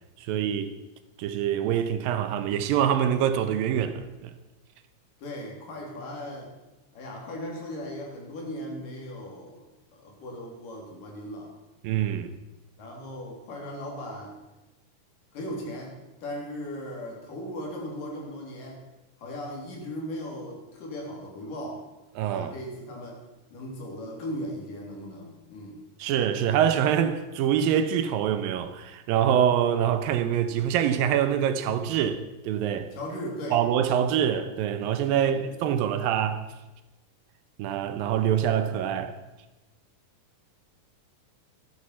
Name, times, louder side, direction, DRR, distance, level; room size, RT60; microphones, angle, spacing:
voice 1, 0.2-0.7 1.2-4.3 11.8-12.3 22.2-22.5 26.0-32.9 33.5-36.4 37.6-39.1, right 9 dB, 80° right, 2.5 m, -25 dB
voice 2, 5.2-6.5 6.9-9.6 9.9-11.5 12.8-14.3 15.3-16.0 16.2-18.8 19.2-21.8 22.3-23.2 23.5-25.8 32.9-33.6 35.1-35.4, equal, 65° left, 4.6 m, -37 dB
14.5 x 11.5 x 5.7 m
omnidirectional pair, 4.2 m